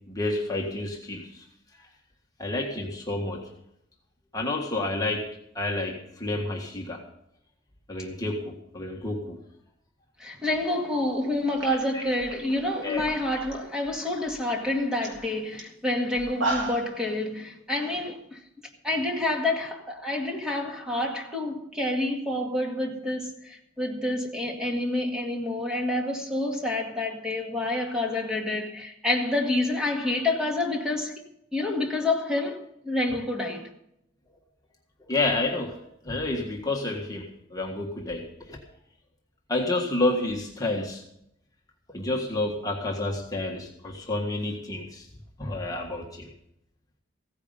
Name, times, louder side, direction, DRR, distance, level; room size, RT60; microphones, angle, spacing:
voice 1, 0.0-1.5 1.8-1.9 2.4-3.5 4.3-7.0 7.9-9.4 11.9-12.0 12.8-13.1 35.0-38.6 39.5-41.0 41.9-45.1 45.4-46.3, left 2 dB, 20° left, 1.7 m, -30 dB
voice 2, 10.2-18.4 18.8-31.2 31.5-33.7, left 2 dB, 5° right, 2.1 m, -28 dB
sound 1, 11.1-11.3 11.6-13.5 13.8-14.3 14.7-14.8 15.0-15.2 15.6-15.7 16.2-16.9, right 2 dB, 70° right, 3.3 m, -33 dB
16.0 x 9.8 x 5.3 m
head